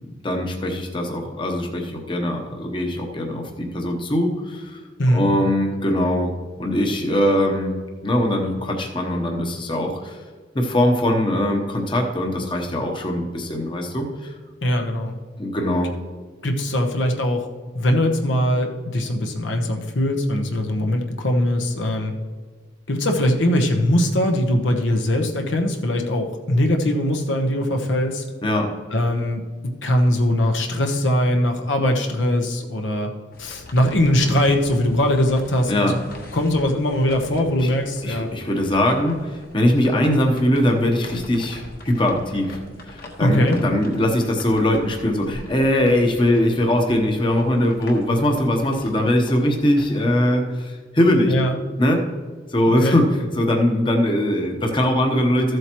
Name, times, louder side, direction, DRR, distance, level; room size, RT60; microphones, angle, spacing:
voice 1, 0.2-4.8 5.1-6.3 6.6-7.8 8.0-10.2 10.5-14.4 15.4-15.9 28.4-28.7 35.7-35.9 37.6-37.7 38.0-42.6 42.9-51.3 51.8-52.1 52.5-55.6, left 1 dB, 25° left, 2 dB, 1.0 m, -21 dB
voice 2, 14.6-15.2 16.4-17.5 17.7-22.1 22.9-28.2 28.9-33.1 33.4-36.0 36.3-38.3 43.2-43.6 51.3-51.6 52.7-53.0, left 1 dB, 75° left, 3 dB, 1.0 m, -21 dB
sound 1, 33.3-50.0, left 1 dB, 50° left, 1.4 m, -42 dB
14.0 x 7.8 x 3.0 m, 1.5 s
head